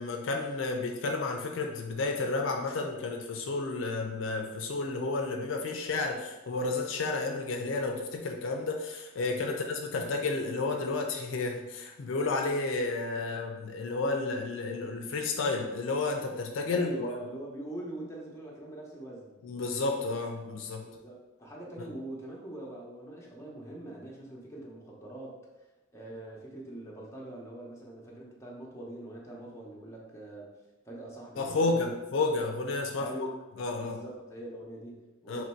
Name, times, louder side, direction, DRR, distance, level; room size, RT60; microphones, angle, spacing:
voice 1, 0.0-17.1 19.4-20.9 31.4-33.3 33.6-34.0 35.3-35.4, left 3 dB, 65° left, 3 dB, 0.4 m, -31 dB
voice 2, 9.3-9.6 16.7-19.4 20.8-25.7 25.9-30.5 30.8-32.0 32.9-33.4 33.8-35.4, right 1 dB, 15° left, -4 dB, 0.7 m, -43 dB
3.0 x 2.6 x 4.3 m, 1.1 s
head